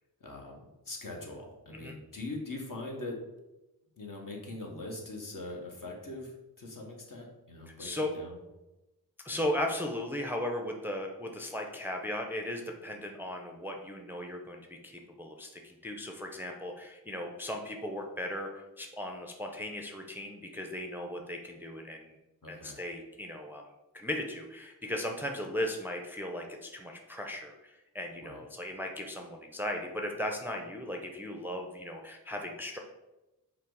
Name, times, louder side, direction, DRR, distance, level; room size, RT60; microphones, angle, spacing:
voice 1, 0.2-3.2 4.0-8.4 9.3-9.4 22.4-22.8 28.2-28.4, left 2 dB, 55° left, 0 dB, 1.1 m, -42 dB
voice 2, 7.8-8.1 9.2-22.2 22.5-23.6 23.9-32.8, left 1 dB, 5° right, 2 dB, 0.5 m, -37 dB
5.8 x 2.0 x 4.6 m, 1.0 s
wide cardioid pair, 65°, 39 cm